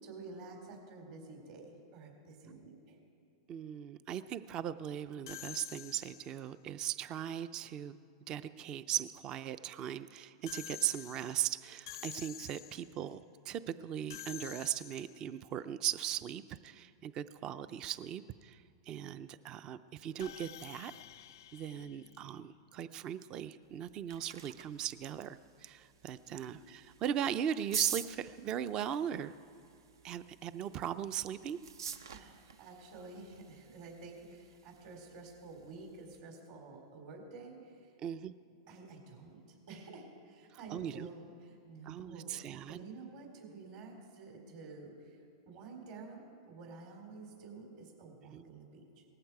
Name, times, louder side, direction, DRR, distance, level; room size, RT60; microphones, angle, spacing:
voice 1, 0.0-3.0 26.2-26.5 32.1-37.9 38.7-39.4 39.7-45.2 45.5-49.1, right 3 dB, 60° right, 2 dB, 3.8 m, -50 dB
voice 2, 3.5-7.9 8.3-20.9 21.5-29.3 30.0-31.6 38.0-38.3 40.7-41.1 41.9-42.9 48.3-48.5, right 10 dB, 35° right, 14 dB, 0.4 m, -38 dB
sound 1, 5.3-6.5 10.5-13.0 14.1-15.4 20.2-22.7, left 13 dB, 70° left, 0.5 m, -49 dB
sound 2, 23.6-36.2, right 7 dB, 90° right, 0.7 m, -46 dB
18.5 x 14.5 x 4.8 m, 2.5 s
hypercardioid pair, 130°, 2 cm